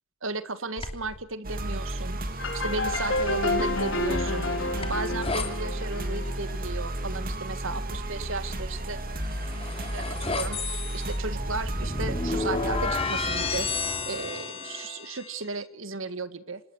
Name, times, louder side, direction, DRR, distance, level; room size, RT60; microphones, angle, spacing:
voice 1, 0.2-2.2 2.5-4.5 4.9-9.0 9.9-13.7 14.1-16.6, right 3 dB, 75° right, 12 dB, 1.8 m, -35 dB
sound 1, 0.8-1.2 3.1-5.5 9.0-15.4, left 3 dB, 30° left, 3.2 m, -32 dB
sound 2, 1.4-13.7, right 1 dB, 45° right, 2.7 m, -33 dB
sound 3, 2.4-7.0, left 2 dB, 70° left, 4.8 m, -30 dB
26.5 x 20.5 x 6.3 m, 0.66 s
head